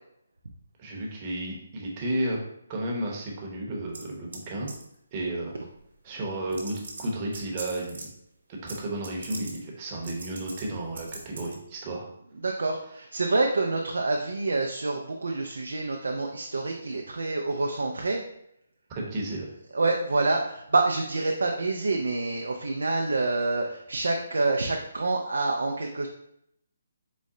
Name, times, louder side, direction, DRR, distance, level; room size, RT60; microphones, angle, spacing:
voice 1, 0.8-2.4 2.7-4.7 5.1-5.6 6.0-8.1 8.6-12.1 18.9-19.5, right 1 dB, 25° right, -2 dB, 0.9 m, -32 dB
sound 1, 3.9-4.4 4.7-5.0 5.9-6.0 6.5-8.1 8.7-8.8 9.0-9.6 10.0-10.6 11.0-11.5, right 3 dB, 70° right, 1.0 m, -40 dB
voice 2, 12.4-18.2 19.7-26.1, right 3 dB, 85° right, 2 dB, 0.4 m, -27 dB
4.1 x 2.1 x 3.7 m, 0.76 s
hypercardioid pair, 160°, 0 cm